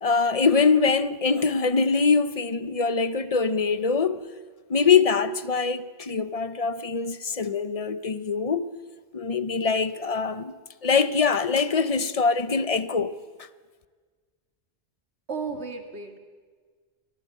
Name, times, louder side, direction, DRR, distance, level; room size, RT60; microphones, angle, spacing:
voice 1, 0.0-4.2 4.7-8.7 9.1-10.5 10.8-13.5, left 5 dB, 35° left, 0.8 m, -23 dB
voice 2, 15.3-16.2, right 5 dB, 80° right, 2.5 m, -33 dB
24.0 x 17.5 x 8.4 m
omnidirectional pair, 1.1 m